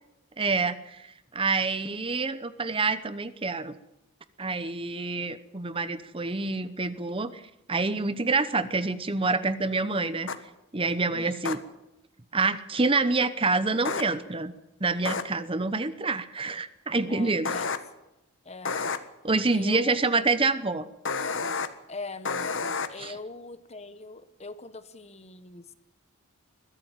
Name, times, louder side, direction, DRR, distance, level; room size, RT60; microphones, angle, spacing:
voice 1, 0.4-3.7 4.4-7.4 7.7-10.3 10.7-11.6 12.3-14.5 14.8-17.6 19.2-20.9 23.0-23.2, right 3 dB, 25° right, 13 dB, 0.9 m, -27 dB
sound 1, 10.3-10.4 11.4-11.5 13.8-14.0 15.0-15.2 17.4-17.8 18.6-19.0 21.0-21.7 22.2-22.9, left 4 dB, 55° left, 1.5 m, -29 dB
voice 2, 11.1-11.5 17.1-17.8 18.4-18.8 19.5-20.0 21.9-22.5 22.9-25.7, left 3 dB, 30° left, 12 dB, 1.3 m, -41 dB
22.0 x 15.5 x 9.0 m, 0.90 s
head